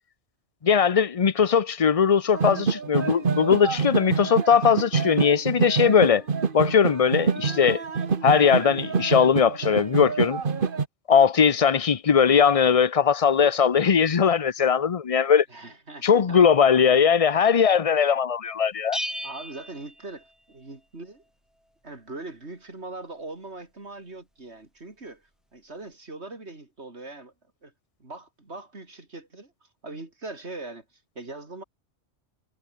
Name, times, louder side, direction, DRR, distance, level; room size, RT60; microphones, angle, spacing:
voice 1, 0.6-6.2 6.5-7.8 8.2-10.4 11.1-15.4 16.0-19.0, left 7 dB, 35° left, 0.7 m, -20 dB
sound 1, 2.3-10.9, right 5 dB, 50° right, 1.4 m, -26 dB
voice 2, 15.5-16.4 19.2-21.2 21.8-25.2 25.5-27.3 27.6-27.7 28.0-30.8 31.2-31.6, right 2 dB, 65° right, 4.2 m, -41 dB
Bell, 18.9-20.8, equal, ahead, 2.2 m, -35 dB
omnidirectional pair, 1.2 m